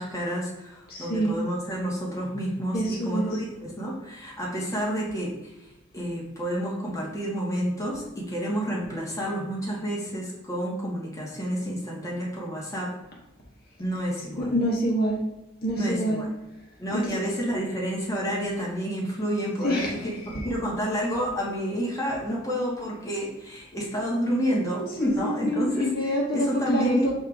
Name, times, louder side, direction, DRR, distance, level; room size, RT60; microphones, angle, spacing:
voice 1, 0.0-5.7 5.9-12.9 13.8-14.5 15.7-16.3 16.8-20.2 20.4-25.9 26.3-27.1, equal, 15° left, -4 dB, 1.1 m, -29 dB
voice 2, 0.9-1.4 2.7-3.3 14.4-15.2 15.6-16.2 16.9-17.1 19.6-20.0 20.3-20.5 24.8-27.1, equal, 55° left, -2 dB, 0.9 m, -26 dB
6.4 x 2.5 x 3.4 m, 0.97 s
head